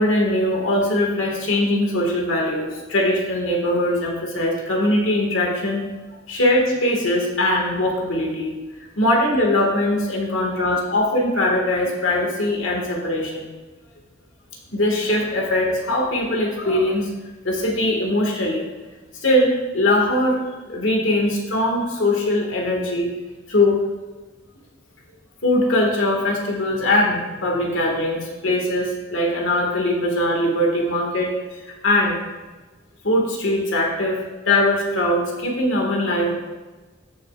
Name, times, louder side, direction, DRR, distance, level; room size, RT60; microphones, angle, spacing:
voice 1, 0.0-5.9 6.3-8.5 9.0-13.5 14.7-17.1 17.4-18.7 19.2-23.1 23.5-23.8 25.4-31.3 31.6-32.2 33.0-36.3, left 1 dB, 75° left, 0 dB, 1.7 m, -21 dB
14.0 x 6.5 x 2.4 m, 1.2 s
head